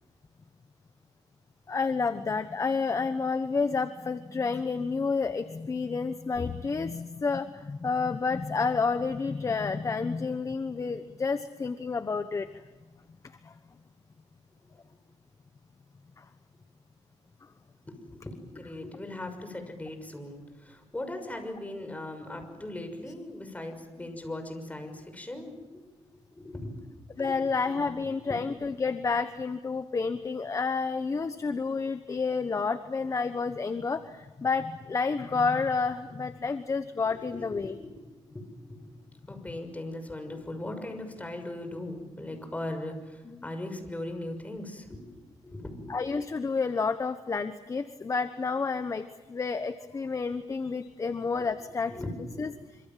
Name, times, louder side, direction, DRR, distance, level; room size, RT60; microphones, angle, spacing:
voice 1, 1.7-12.5 13.4-13.5 16.2-16.3 27.2-37.8 43.4-43.5 45.9-51.9 52.4-52.5, left 4 dB, 30° left, 10 dB, 1.1 m, -30 dB
voice 2, 17.8-25.9 26.3-26.7 27.1-27.4 28.2-28.4 37.2-39.0 39.3-46.0 51.2-51.5 51.9-52.4, left 1 dB, 15° left, 6 dB, 6.2 m, -39 dB
26.5 x 25.5 x 7.6 m, 1.2 s
cardioid pair, 115°, 11 cm